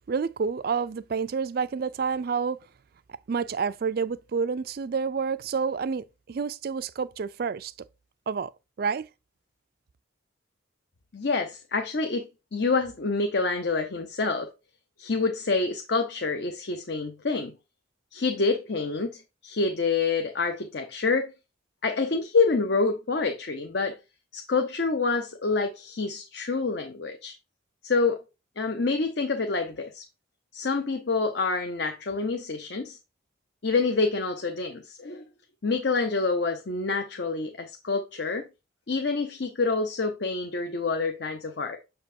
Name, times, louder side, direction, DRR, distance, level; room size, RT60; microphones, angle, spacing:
voice 1, 0.1-2.6 3.1-7.7 8.3-8.5 8.8-9.1, right 5 dB, 50° right, 0.3 m, -29 dB
voice 2, 11.1-12.3 12.5-14.5 15.0-17.5 18.1-21.3 21.8-23.9 24.3-27.3 27.8-28.2 28.6-30.0 30.5-33.0 33.6-35.2 35.6-38.4 38.9-41.8, left 4 dB, 55° left, 0.7 m, -27 dB
6.8 x 5.2 x 2.7 m
head